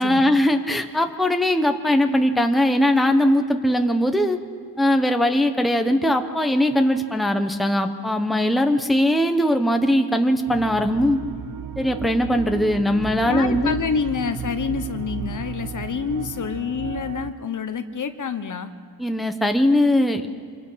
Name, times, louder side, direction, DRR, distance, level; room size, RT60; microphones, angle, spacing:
voice 1, 0.0-4.4 4.8-11.2 11.8-13.7 19.0-20.3, left 1 dB, ahead, 6 dB, 0.9 m, -20 dB
sound 1, 10.5-17.3, right 8 dB, 50° right, 0.6 m, -34 dB
voice 2, 13.2-18.7, left 6 dB, 50° left, 9 dB, 1.1 m, -27 dB
26.0 x 24.0 x 5.7 m, 2.3 s
wide cardioid pair, 135°, 41 cm